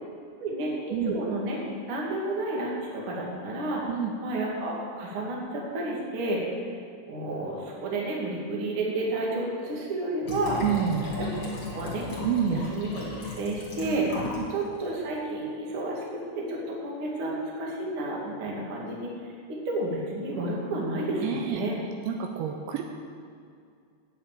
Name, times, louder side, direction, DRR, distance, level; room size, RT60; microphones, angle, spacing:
voice 1, 0.4-0.7 1.1-1.6 1.9-3.9 4.2-6.4 7.1-10.6 11.4-12.0 12.5-19.1 19.5-21.7, right 2 dB, 45° right, -3 dB, 1.7 m, -31 dB
Liquid, 10.2-14.5 14.8-14.9, left 2 dB, 70° left, 0.9 m, -35 dB
voice 2, 10.6-11.1 12.2-12.6 14.3-14.5 21.2-21.6 22.1-22.8, right 9 dB, 80° right, 4 dB, 2.8 m, -28 dB
9.5 x 7.5 x 8.8 m, 2.3 s
omnidirectional pair, 5.6 m